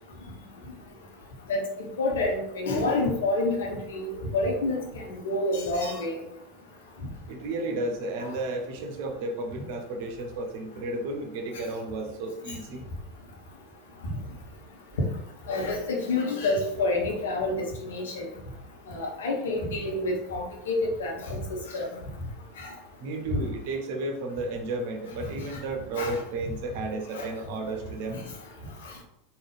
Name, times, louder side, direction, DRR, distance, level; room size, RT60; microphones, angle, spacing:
voice 1, 2.0-4.1 4.3-6.2 8.2-8.3 12.5-12.6 15.5-18.3 18.9-21.4 21.7-21.9 22.6-22.7 25.5-25.6 25.9-26.2 27.1-27.3, left 2 dB, 65° left, 0 dB, 1.0 m, -28 dB
voice 2, 7.3-12.9 23.0-28.2, right 2 dB, 55° right, 4 dB, 0.7 m, -33 dB
3.8 x 2.6 x 3.3 m, 0.83 s
figure-of-eight pair, 80°, 0 cm